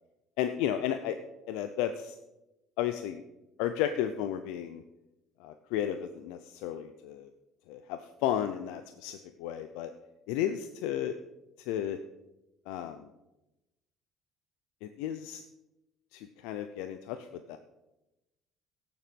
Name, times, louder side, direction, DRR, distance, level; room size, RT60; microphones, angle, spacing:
voice 1, 0.4-1.2 1.5-2.2 2.8-3.2 3.6-4.8 5.4-7.3 7.7-9.9 10.3-11.2 11.6-12.0 12.7-13.1 14.8-15.4 16.1-17.6, left 10 dB, 85° left, 9 dB, 0.6 m, -33 dB
16.5 x 7.3 x 5.3 m, 0.97 s
supercardioid pair, 85°, 0 cm